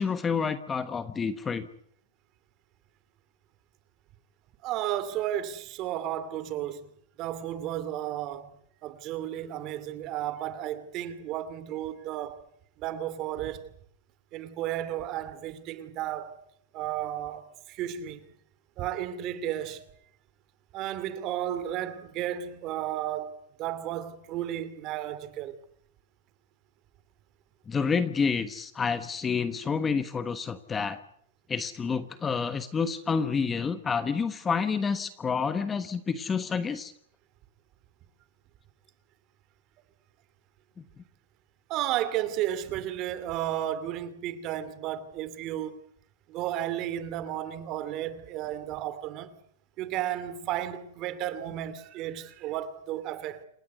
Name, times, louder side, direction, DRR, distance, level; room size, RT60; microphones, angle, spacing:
voice 1, 0.0-1.7 27.7-31.0 31.5-36.9, left 5 dB, 15° left, 1.1 m, -29 dB
voice 2, 4.6-6.9 7.2-8.5 8.8-12.4 12.8-13.6 14.3-16.4 16.7-18.2 18.8-19.8 20.7-25.6 41.7-45.8 46.3-49.3 49.8-53.4, right 12 dB, 30° right, 2.5 m, -33 dB
28.0 x 16.5 x 9.3 m
supercardioid pair, 160°, 0 cm